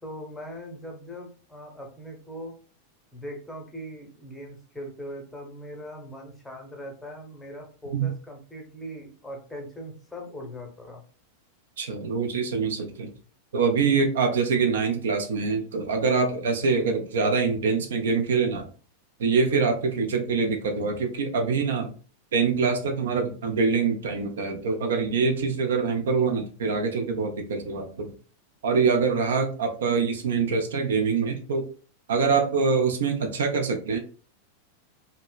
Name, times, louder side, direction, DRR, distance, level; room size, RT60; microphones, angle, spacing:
voice 1, 0.0-2.5 3.1-11.0, equal, 5° left, 1 dB, 0.8 m, -40 dB
voice 2, 11.8-13.1 13.5-18.7 19.2-21.9 22.3-28.1 28.6-31.7 32.1-34.0, right 5 dB, 60° right, 5 dB, 0.4 m, -24 dB
2.8 x 2.1 x 2.3 m, 0.38 s
figure-of-eight pair, 90°, 0 cm